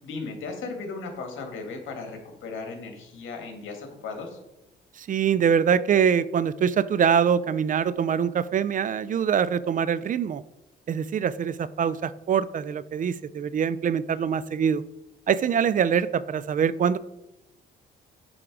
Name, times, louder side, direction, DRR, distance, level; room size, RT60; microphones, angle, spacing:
voice 1, 0.0-4.4, left 4 dB, 75° left, 3 dB, 1.8 m, -36 dB
voice 2, 5.0-10.4 10.9-14.8 15.3-17.0, right 7 dB, 40° right, 17 dB, 0.4 m, -24 dB
9.9 x 3.7 x 4.7 m, 0.94 s
cardioid pair, 90°, 20 cm